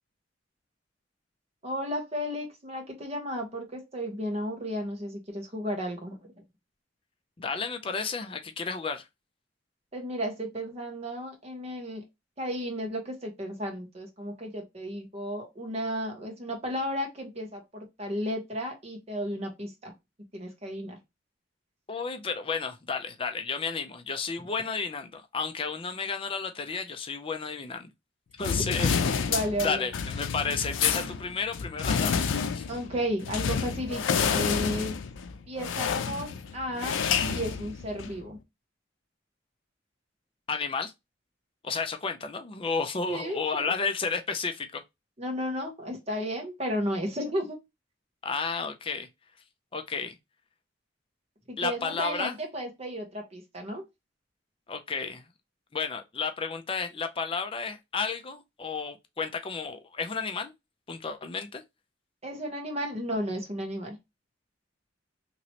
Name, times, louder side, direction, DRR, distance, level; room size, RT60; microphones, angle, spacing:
voice 1, 1.6-6.2 9.9-12.0 12.4-19.9 20.3-21.0 29.3-29.9 30.9-31.1 32.7-35.0 35.5-38.4 43.1-43.7 45.2-47.6 51.5-53.8 62.2-64.0, equal, 35° right, 1.1 m, -33 dB
voice 2, 7.4-9.1 21.9-27.9 28.4-29.3 29.6-32.7 40.5-40.9 41.6-44.8 48.2-49.1 49.7-50.2 51.6-52.3 54.7-55.3 55.7-60.5 60.9-61.6, left 5 dB, 30° left, 0.4 m, -32 dB
sound 1, 28.4-38.2, left 6 dB, 90° left, 0.4 m, -29 dB
3.0 x 2.9 x 2.8 m
head